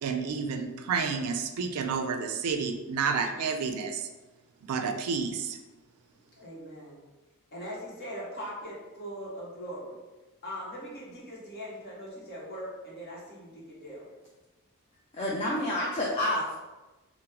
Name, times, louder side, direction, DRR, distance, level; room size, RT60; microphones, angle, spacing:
voice 1, 0.0-4.1 4.6-5.6, right 5 dB, 80° right, 6 dB, 0.4 m, -30 dB
voice 2, 6.4-7.0 7.5-10.0 10.4-14.1, equal, 45° left, -5 dB, 1.0 m, -41 dB
voice 3, 15.1-16.5, left 1 dB, 30° left, -4 dB, 0.4 m, -29 dB
2.8 x 2.1 x 3.7 m, 1.1 s
head